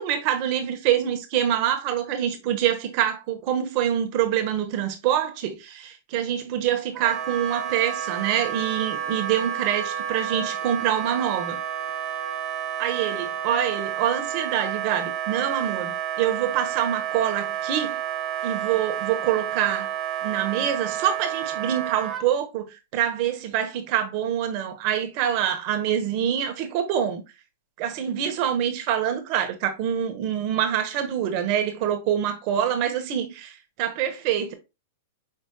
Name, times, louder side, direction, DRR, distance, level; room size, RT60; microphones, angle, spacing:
voice 1, 0.0-11.6 12.8-18.0 18.4-19.9 20.2-27.2 27.8-34.5, right 10 dB, 50° right, 1.1 m, -25 dB
Wind instrument woodwind instrument, 6.9-22.2, right 10 dB, 30° right, 0.7 m, -30 dB
5.6 x 3.4 x 2.3 m
hypercardioid pair, 125°, 0 cm